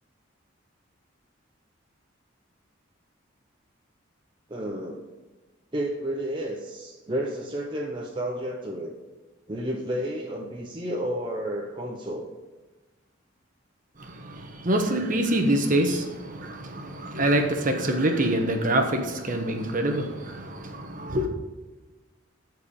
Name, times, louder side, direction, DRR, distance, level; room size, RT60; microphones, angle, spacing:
voice 1, 4.5-5.1 5.7-8.9 9.5-12.3, right 1 dB, 25° right, 0.8 m, -31 dB
voice 2, 14.0-21.3, right 1 dB, 40° right, 1.2 m, -25 dB
13.5 x 4.8 x 5.4 m
head